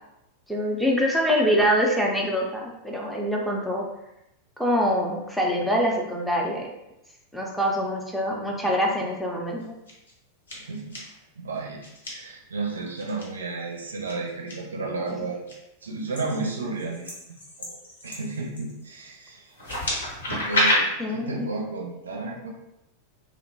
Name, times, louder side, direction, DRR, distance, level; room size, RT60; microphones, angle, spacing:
voice 1, 0.5-3.8 4.6-6.7 7.3-9.6 15.1-15.2 21.0-21.5, equal, ahead, -2 dB, 0.5 m, -24 dB
sound 1, 9.6-10.1 10.5-11.0 11.8-12.1 13.0-13.2 14.0-14.5 15.1-15.5 16.1-18.8 19.5-20.7, left 1 dB, 75° left, 0.8 m, -29 dB
voice 2, 10.5-11.1 11.4-11.8 12.1-15.5 15.8-17.1 17.6-17.8 18.0-19.5 20.3-22.5, right 3 dB, 70° right, 0 dB, 0.5 m, -32 dB
2.8 x 2.2 x 2.6 m, 0.88 s
figure-of-eight pair, 90°, 0 cm